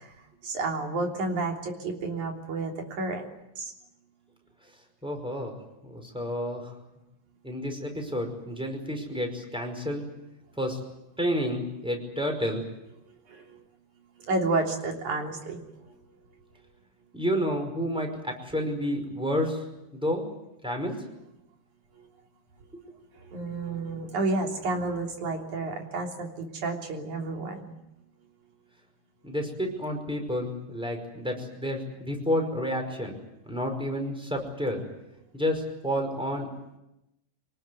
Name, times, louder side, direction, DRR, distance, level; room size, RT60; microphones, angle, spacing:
voice 1, 0.4-3.2 3.6-3.7 13.3-13.4 14.3-15.6 23.3-27.8, right 3 dB, 65° right, 1 dB, 4.8 m, -30 dB
voice 2, 5.0-5.5 5.8-6.7 7.4-10.0 10.6-10.8 11.2-12.6 17.1-19.6 19.9-20.2 20.6-21.1 29.2-33.1 33.4-34.8 35.3-36.5, equal, ahead, 4 dB, 5.0 m, -30 dB
26.5 x 19.5 x 9.6 m, 0.90 s
omnidirectional pair, 3.7 m